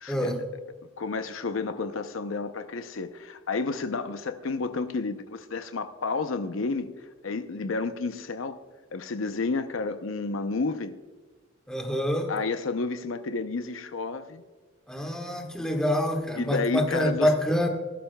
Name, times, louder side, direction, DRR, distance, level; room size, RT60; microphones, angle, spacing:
voice 1, 0.0-0.4 1.0-6.9 7.2-8.6 8.9-11.0 12.3-14.4 16.4-17.3, left 4 dB, 80° left, 0.7 m, -31 dB
voice 2, 11.7-12.3 14.9-17.7, equal, 5° left, 1.4 m, -26 dB
18.0 x 11.5 x 2.3 m
head